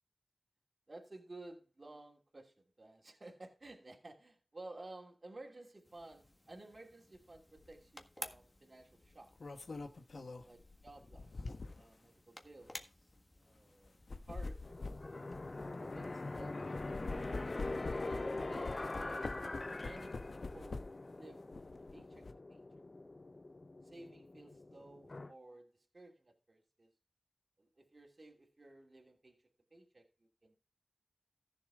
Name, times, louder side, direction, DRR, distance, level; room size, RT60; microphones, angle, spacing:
voice 1, 0.9-9.3 10.4-11.5 11.8-14.0 14.3-14.9 15.6-17.5 18.0-19.3 19.8-20.8 21.1-21.5 21.9-22.6 23.8-26.9 27.6-30.6, right 2 dB, 40° right, 2.9 m, -55 dB
sound 1, 5.8-17.8, left 1 dB, 25° left, 1.6 m, -56 dB
sound 2, 7.6-7.8 9.1-11.9 12.6-12.8 13.9-16.4 16.8-21.1 21.5-22.3, left 3 dB, 70° left, 1.2 m, -45 dB
sound 3, 14.6-25.3, left 2 dB, 40° left, 0.6 m, -43 dB
14.5 x 7.1 x 3.7 m
wide cardioid pair, 75°, 0 cm